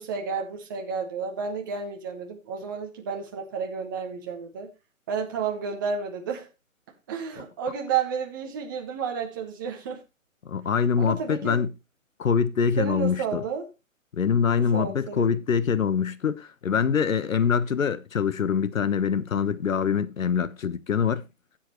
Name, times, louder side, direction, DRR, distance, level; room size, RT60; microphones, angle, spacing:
voice 1, 0.0-4.7 5.1-6.5 7.1-10.0 11.0-11.6 12.8-13.7 14.5-15.3, right 6 dB, 15° right, 1.0 m, -31 dB
voice 2, 10.5-11.7 12.2-13.4 14.1-21.2, left 7 dB, 75° left, 1.2 m, -24 dB
15.5 x 7.7 x 3.0 m
hypercardioid pair, 165°, 40 cm